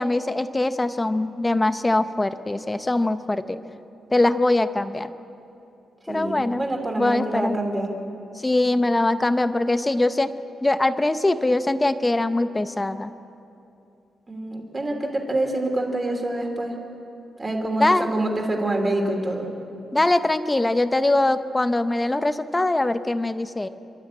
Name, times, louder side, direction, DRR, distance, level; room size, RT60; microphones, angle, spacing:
voice 1, 0.0-3.6 4.1-5.1 6.1-6.6 7.0-7.6 8.4-10.3 10.6-13.1 17.8-18.1 19.9-23.7, left 2 dB, 10° left, 11 dB, 0.7 m, -22 dB
voice 2, 6.1-7.9 14.3-16.7 17.4-19.5, right 1 dB, 20° right, 2 dB, 2.9 m, -26 dB
29.5 x 13.0 x 8.8 m, 2.8 s
wide cardioid pair, 170°, 0 cm